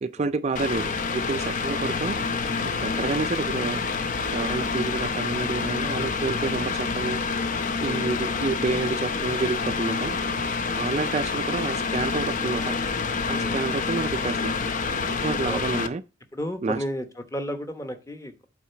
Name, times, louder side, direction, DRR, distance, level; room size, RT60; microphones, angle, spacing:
voice 1, 0.0-2.2 2.8-3.8 4.3-7.2 7.8-10.2 10.8-12.8 13.3-14.6 15.2-16.0 16.6-16.8, right 3 dB, 35° right, 0.3 m, -29 dB
Mechanical fan, 0.6-15.9, left 4 dB, 40° left, 0.7 m, -27 dB
voice 2, 16.3-18.4, equal, 15° left, 1.0 m, -33 dB
8.5 x 4.1 x 5.6 m
head